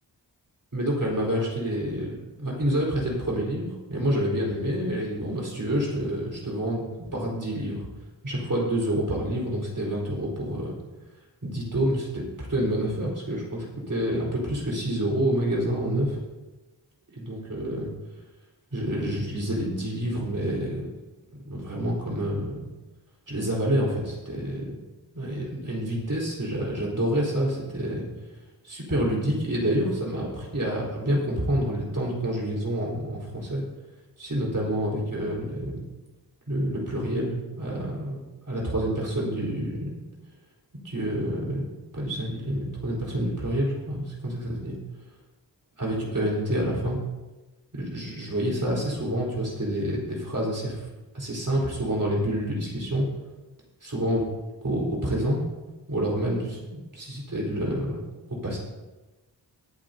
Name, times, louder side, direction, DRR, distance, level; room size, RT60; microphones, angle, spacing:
voice 1, 0.7-7.8 8.2-10.7 11.4-16.2 17.1-17.9 18.7-20.9 21.5-22.6 23.3-24.7 25.1-28.1 28.6-33.6 34.2-35.8 36.5-40.0 40.7-44.8 45.8-47.0 47.7-50.9 51.1-53.1 53.8-54.2 54.6-55.4 55.9-58.0 58.3-58.6, right 1 dB, 45° right, -4 dB, 4.0 m, -28 dB
22.5 x 8.0 x 2.7 m, 1.1 s
wide cardioid pair, 80°, 43 cm